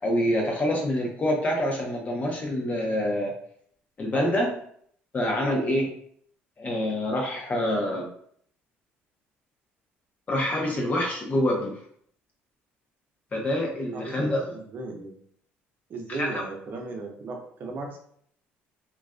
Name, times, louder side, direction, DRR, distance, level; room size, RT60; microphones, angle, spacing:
voice 1, 0.0-3.3 4.0-4.5 5.1-5.9 6.6-8.1 10.3-11.8 13.3-14.4 16.1-16.3, left 1 dB, 35° left, -1 dB, 0.7 m, -26 dB
voice 2, 13.9-15.2 15.9-18.0, right 3 dB, 50° right, 1 dB, 0.7 m, -36 dB
2.4 x 2.3 x 2.2 m, 0.63 s
cardioid pair, 95°, 4 cm